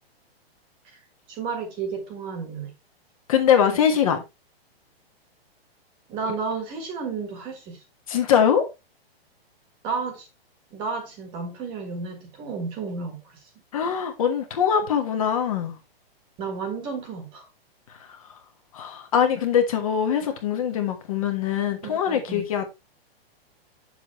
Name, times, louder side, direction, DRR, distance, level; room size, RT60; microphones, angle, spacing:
voice 1, 1.3-2.7 6.1-7.8 9.8-10.3 10.7-13.4 16.4-17.5 21.8-22.5, right 5 dB, 15° right, 1.5 m, -32 dB
voice 2, 3.3-4.2 8.1-8.7 13.7-15.8 18.1-18.2 18.7-22.7, left 8 dB, 35° left, 1.4 m, -22 dB
8.8 x 7.1 x 3.1 m
hypercardioid pair, 180°, 31 cm